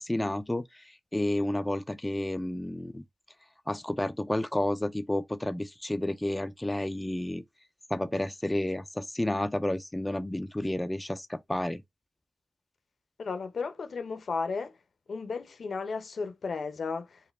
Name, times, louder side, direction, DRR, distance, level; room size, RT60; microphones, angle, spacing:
voice 1, 0.0-3.0 3.7-7.4 7.9-11.8, left 1 dB, 10° left, 0.3 m, -31 dB
voice 2, 13.2-14.7 15.1-17.2, left 4 dB, 65° left, 0.7 m, -34 dB
4.8 x 2.2 x 3.2 m
wide cardioid pair, 105°, 0 cm